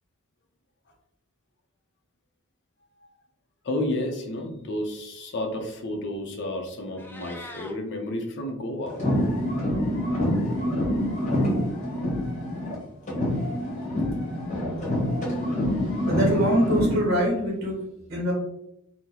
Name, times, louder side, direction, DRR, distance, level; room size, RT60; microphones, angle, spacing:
voice 1, 3.6-9.0, left 1 dB, 60° left, 3 dB, 0.6 m, -31 dB
Meow, 6.8-7.7, left 1 dB, 10° left, 0.3 m, -42 dB
sound 1, 8.9-12.8 13.1-17.1, left 1 dB, 35° left, 1.0 m, -26 dB
voice 2, 16.1-17.8 18.1-18.3, equal, 50° right, -2 dB, 1.0 m, -23 dB
2.9 x 2.1 x 3.8 m, 0.82 s
head